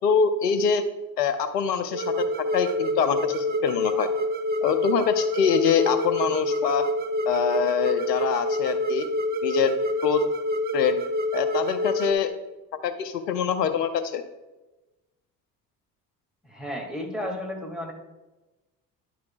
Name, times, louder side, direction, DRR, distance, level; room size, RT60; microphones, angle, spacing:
voice 1, 0.0-0.8 1.2-4.1 4.6-6.9 7.3-9.1 9.4-9.7 10.0-10.2 10.7-11.0 11.3-12.3 12.8-14.2, left 7 dB, 80° left, 9 dB, 0.7 m, -24 dB
sound 1, 1.9-12.1, left 1 dB, 20° right, 0.7 m, -27 dB
voice 2, 16.4-17.9, left 1 dB, ahead, -1 dB, 2.2 m, -33 dB
10.5 x 5.9 x 2.4 m, 1.1 s
figure-of-eight pair, 55°, 48 cm